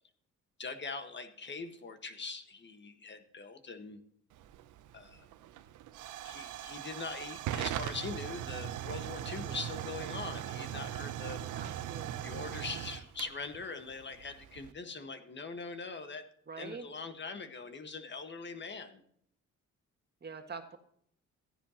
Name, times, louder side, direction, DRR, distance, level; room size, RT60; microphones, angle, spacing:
voice 1, 0.6-4.0 4.9-5.3 6.2-11.4 12.2-16.2 16.6-19.0, left 4 dB, 40° left, 8 dB, 1.6 m, -42 dB
Hiss / Fire / Tick, 4.3-14.7, right 11 dB, 80° right, 0.7 m, -40 dB
voice 2, 11.5-12.2 16.5-16.8 20.2-20.8, right 5 dB, 35° right, 5 dB, 1.8 m, -44 dB
14.5 x 10.0 x 3.0 m, 0.66 s
cardioid pair, 90°, 30 cm